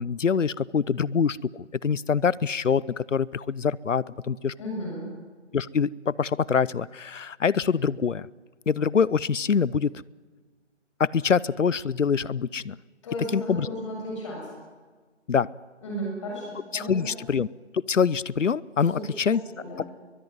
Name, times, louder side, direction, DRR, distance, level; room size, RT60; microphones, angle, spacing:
voice 1, 0.0-4.5 5.5-8.3 8.7-9.9 11.0-12.8 13.3-13.7 15.3-15.5 16.7-17.5 17.7-19.4, left 6 dB, 85° left, 22 dB, 0.8 m, -25 dB
voice 2, 4.6-5.1 13.0-14.5 15.8-17.2 18.9-19.9, equal, 25° left, -2 dB, 7.2 m, -35 dB
22.5 x 21.5 x 9.6 m, 1.4 s
figure-of-eight pair, 165°, 36 cm